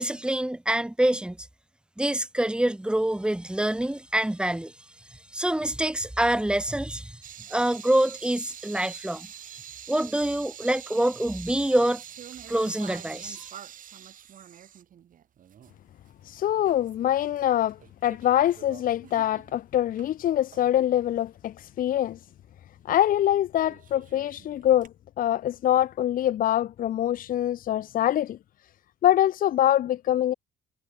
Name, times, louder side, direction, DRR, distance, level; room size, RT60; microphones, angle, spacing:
voice 1, 0.0-1.4 2.0-4.7 5.3-7.2 7.5-9.3 9.9-12.0 12.5-13.5, right 1 dB, 5° right, 2.2 m, -26 dB
sound 1, 7.2-15.8 16.1-16.2 16.6-17.4 17.7-20.1 20.5-20.7 23.1-23.3 23.6-24.9, right 10 dB, 50° right, 4.2 m, -45 dB
voice 2, 16.3-17.8 18.0-22.2 22.8-24.9 25.2-28.4 29.0-30.3, left 12 dB, 55° left, 1.0 m, -24 dB
cardioid pair, 110°, 17 cm